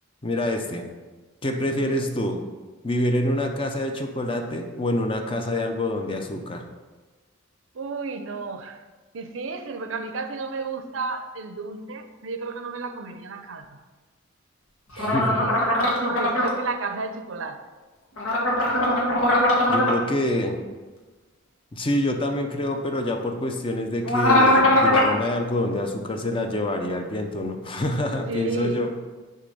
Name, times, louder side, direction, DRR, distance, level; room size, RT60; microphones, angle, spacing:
voice 1, 0.2-0.9 1.4-2.4 2.8-6.6 14.9-15.6 19.7-20.6 21.7-29.0, left 1 dB, 25° left, 4 dB, 0.5 m, -26 dB
voice 2, 7.7-8.8 9.1-13.6 15.0-15.6 15.8-17.6 28.3-28.8, right 3 dB, 70° right, 7 dB, 0.5 m, -32 dB
sound 1, 15.0-16.5 18.2-19.9 24.0-25.1, left 1 dB, 90° left, 1.3 m, -20 dB
6.7 x 3.3 x 5.4 m, 1.3 s
head